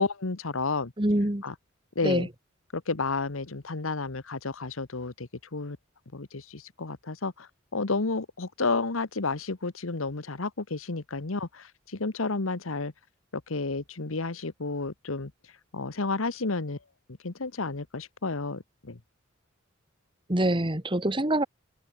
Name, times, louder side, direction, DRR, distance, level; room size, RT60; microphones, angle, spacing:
voice 1, 0.0-0.9 1.4-1.5 1.9-2.3 2.7-5.8 6.1-12.9 13.3-15.3 15.7-16.8 17.2-19.0, left 3 dB, 85° left, 1.3 m, -31 dB
voice 2, 1.0-1.4 2.0-2.3 20.3-21.5, right 1 dB, 25° right, 1.6 m, -25 dB
head